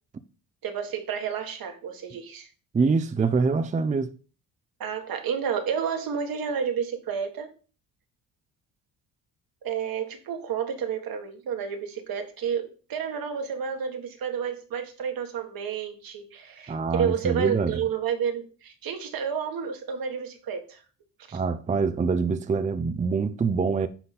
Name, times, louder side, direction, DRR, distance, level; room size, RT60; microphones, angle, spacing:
voice 1, 0.6-2.5 4.8-7.5 9.6-20.8 21.3-21.4, right 7 dB, 65° right, 1.7 m, -30 dB
voice 2, 2.7-4.2 16.7-17.8 21.3-23.9, right 4 dB, 20° right, 0.5 m, -25 dB
9.9 x 4.0 x 4.2 m
cardioid pair, 100°, 38 cm